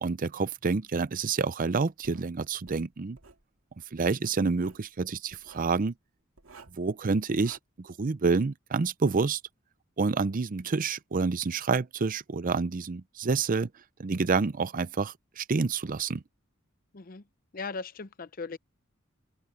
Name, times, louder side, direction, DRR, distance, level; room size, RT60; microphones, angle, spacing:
voice 1, 0.0-3.2 3.9-5.9 6.8-9.4 10.0-13.7 14.0-16.2, right 4 dB, 40° right, 0.5 m, -28 dB
Writing, 2.0-2.3 2.7-3.4 4.4-4.9 5.3-5.7 6.4-6.9 7.3-7.6, right 4 dB, 75° right, 2.3 m, -53 dB
voice 2, 17.5-18.6, left 4 dB, 45° left, 0.7 m, -38 dB
open air
head